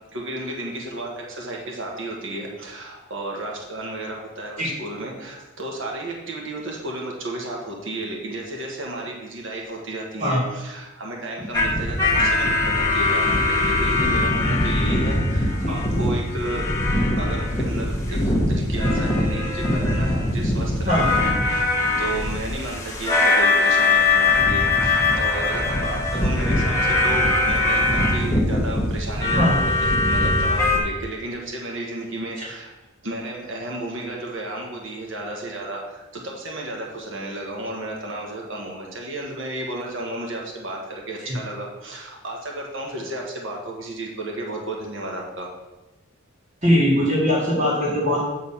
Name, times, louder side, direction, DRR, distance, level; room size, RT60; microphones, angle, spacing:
voice 1, 0.1-16.6 17.2-32.7 33.0-45.5, right 1 dB, 65° right, -1 dB, 1.6 m, -33 dB
sound 1, 11.5-30.8, left 2 dB, 15° left, 1.1 m, -21 dB
voice 2, 46.6-48.2, equal, 35° right, -10 dB, 2.1 m, -20 dB
8.8 x 4.0 x 5.6 m, 1.1 s
head